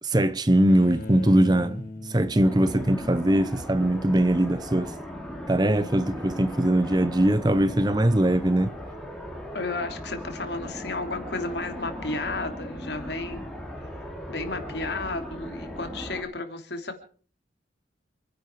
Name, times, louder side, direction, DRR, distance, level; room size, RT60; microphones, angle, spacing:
voice 1, 0.0-5.0 5.5-8.7, right 1 dB, 20° right, 0.7 m, -21 dB
Bowed string instrument, 0.7-3.7, left 2 dB, 45° left, 3.2 m, -40 dB
sound 1, 2.4-16.2, equal, 5° left, 3.2 m, -38 dB
voice 2, 9.5-13.5 14.3-17.0, left 2 dB, 65° left, 3.2 m, -33 dB
28.0 x 10.5 x 4.8 m
head